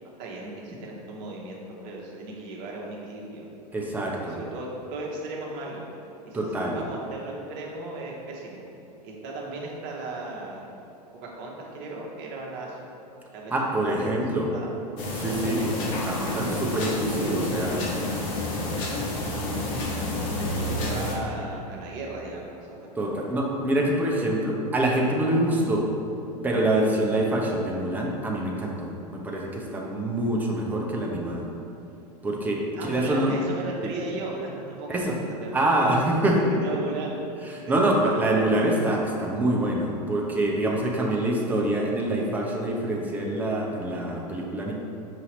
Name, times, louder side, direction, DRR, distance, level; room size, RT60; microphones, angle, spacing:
voice 1, 0.2-3.5 4.1-5.8 6.2-8.6 9.0-10.7 11.1-12.8 13.3-14.7 15.3-16.6 19.6-19.7 20.3-23.2 32.7-36.0 36.3-37.2 37.7-38.2, right 2 dB, 45° right, -2 dB, 0.9 m, -37 dB
voice 2, 3.7-4.4 6.3-6.8 13.5-14.5 15.2-15.7 16.0-17.9 23.0-25.9 26.4-31.5 32.2-33.4 33.8-33.9 34.9-35.2 35.5-36.5 37.5-44.7, right 1 dB, 10° right, -2 dB, 0.5 m, -25 dB
sound 1, 15.0-21.1, left 1 dB, 50° left, 0.8 m, -29 dB
5.1 x 2.8 x 3.0 m, 2.7 s
figure-of-eight pair, 90°, 21 cm